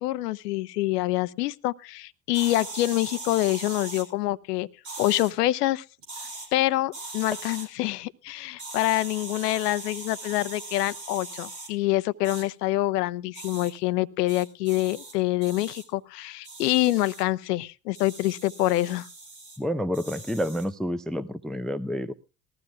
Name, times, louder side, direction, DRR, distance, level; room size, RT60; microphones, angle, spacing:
voice 1, 0.0-4.7 5.0-5.8 6.5-19.1, left 17 dB, 70° left, 18 dB, 0.8 m, -26 dB
sound 1, 2.3-4.1 4.8-5.3 6.0-6.5 6.9-7.7 8.6-11.7 12.2-12.4 13.3-13.7 14.3-15.1 15.4-15.8 16.4-17.2 17.9-19.6 19.9-20.7, right 2 dB, 70° right, 7.0 m, -40 dB
voice 2, 19.6-22.1, equal, ahead, 15 dB, 0.6 m, -29 dB
20.0 x 15.0 x 2.3 m, 0.31 s
hypercardioid pair, 70°, 49 cm